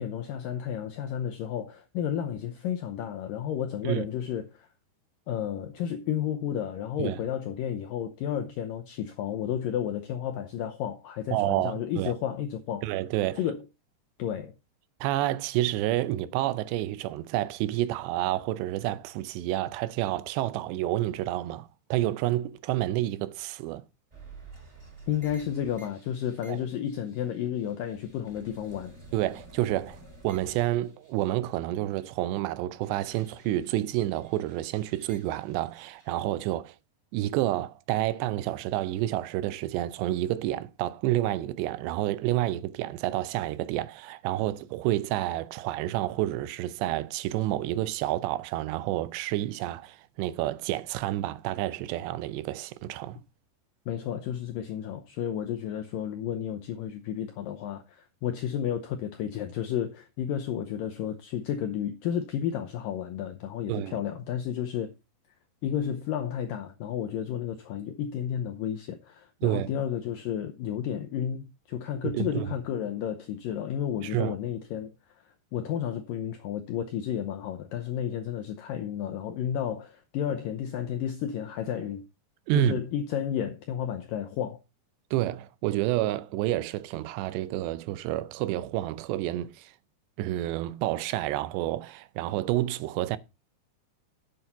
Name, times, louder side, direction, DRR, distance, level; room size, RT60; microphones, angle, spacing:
voice 1, 0.0-4.7 5.3-12.9 13.4-13.6 14.2-14.6 25.1-28.9 53.9-64.9 65.6-82.0 82.5-84.6, left 9 dB, 85° left, 2.0 m, -32 dB
voice 2, 11.3-12.1 12.8-13.4 15.0-23.8 26.5-26.6 29.1-36.8 37.1-53.2 63.7-64.0 69.4-69.7 72.0-72.5 74.0-74.4 82.5-82.8 85.1-89.7 90.2-93.2, right 15 dB, 85° right, 2.8 m, -29 dB
sound 1, 24.1-32.1 32.4-36.2, right 2 dB, 15° right, 4.5 m, -52 dB
9.0 x 8.3 x 4.1 m
omnidirectional pair, 5.0 m